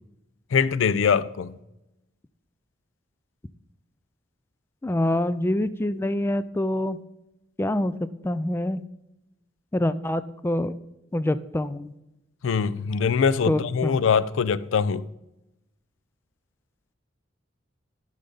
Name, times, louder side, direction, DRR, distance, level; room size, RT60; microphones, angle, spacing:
voice 1, 0.5-1.5 12.4-15.0, left 6 dB, 80° left, 0.4 m, -23 dB
voice 2, 4.8-7.0 7.6-8.8 9.7-10.8 11.1-11.9 13.4-14.0, left 1 dB, 10° left, 0.3 m, -26 dB
11.5 x 6.7 x 3.9 m
head